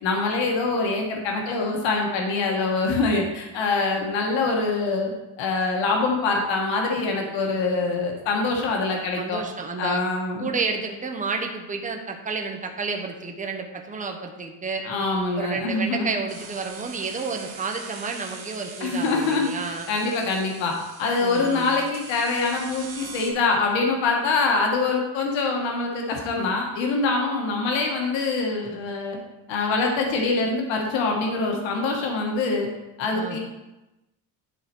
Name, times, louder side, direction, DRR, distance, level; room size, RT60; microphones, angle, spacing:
voice 1, 0.0-5.1 5.4-9.4 9.8-10.5 14.8-16.1 18.8-29.2 29.5-32.7 33.0-33.4, left 3 dB, 90° left, 1 dB, 1.4 m, -24 dB
voice 2, 9.2-10.0 10.4-14.8 15.4-19.9 21.2-21.7 33.1-33.4, right 4 dB, 20° right, 3 dB, 1.0 m, -30 dB
sound 1, 16.3-23.3, right 5 dB, 55° right, 1.8 m, -42 dB
11.0 x 4.2 x 4.5 m, 1.0 s
cardioid pair, 115°, 43 cm